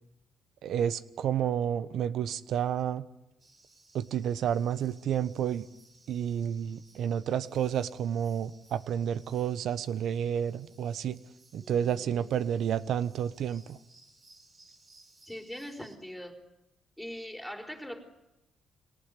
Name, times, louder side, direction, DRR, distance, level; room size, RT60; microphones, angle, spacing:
voice 1, 0.6-3.0 3.9-5.7 6.1-11.2 11.5-13.8, right 9 dB, 75° right, 16 dB, 1.1 m, -30 dB
sound 1, 3.4-16.0, right 2 dB, 40° right, 4.8 m, -61 dB
voice 2, 11.6-12.4 15.2-16.4 17.0-18.0, equal, ahead, 2 dB, 4.5 m, -42 dB
25.0 x 18.5 x 9.8 m, 0.92 s
cardioid pair, 90°, 0 cm